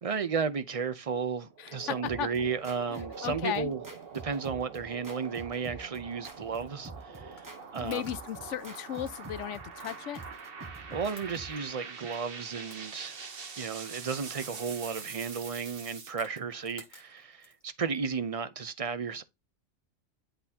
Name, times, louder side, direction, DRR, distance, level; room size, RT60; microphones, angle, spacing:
voice 1, 0.0-3.8 4.1-8.0 10.9-13.2 13.5-19.2, right 5 dB, 35° right, 0.6 m, -34 dB
sound 1, 1.5-16.1, right 5 dB, 50° right, 1.2 m, -44 dB
sound 2, 2.0-11.6, right 2 dB, 15° right, 1.0 m, -47 dB
voice 2, 2.9-3.7 7.8-10.2, left 11 dB, 75° left, 0.9 m, -36 dB
sound 3, 6.3-18.0, left 2 dB, 40° left, 2.0 m, -58 dB
10.5 x 4.0 x 2.8 m
omnidirectional pair, 1.3 m